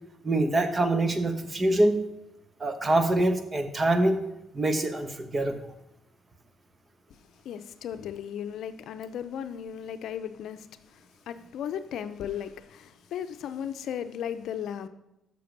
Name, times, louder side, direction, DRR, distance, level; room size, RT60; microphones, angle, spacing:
voice 1, 0.2-2.0 2.6-4.2 4.5-5.5, right 1 dB, 30° right, 7 dB, 1.2 m, -24 dB
voice 2, 7.4-14.9, left 9 dB, 75° left, 10 dB, 0.6 m, -36 dB
6.8 x 6.8 x 6.5 m, 0.88 s
cardioid pair, 80°, 0 cm